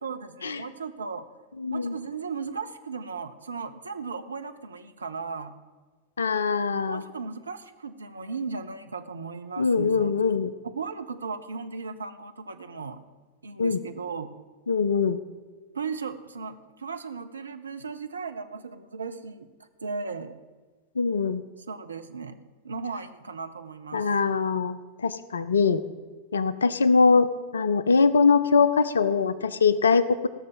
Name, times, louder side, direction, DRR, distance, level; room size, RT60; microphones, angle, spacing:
voice 1, 0.0-1.3 1.7-5.6 6.9-10.1 10.7-13.0 13.4-14.3 15.7-19.5 19.8-20.4 21.6-22.4 22.6-24.1, right 5 dB, 75° right, 9 dB, 0.8 m, -36 dB
voice 2, 1.6-1.9 6.2-7.0 9.6-10.5 13.6-13.8 14.7-15.2 21.0-21.4 23.9-25.8 26.3-27.3 27.5-30.3, left 5 dB, 70° left, 15 dB, 0.6 m, -22 dB
16.5 x 6.6 x 7.3 m, 1.4 s
figure-of-eight pair, 90°, 0 cm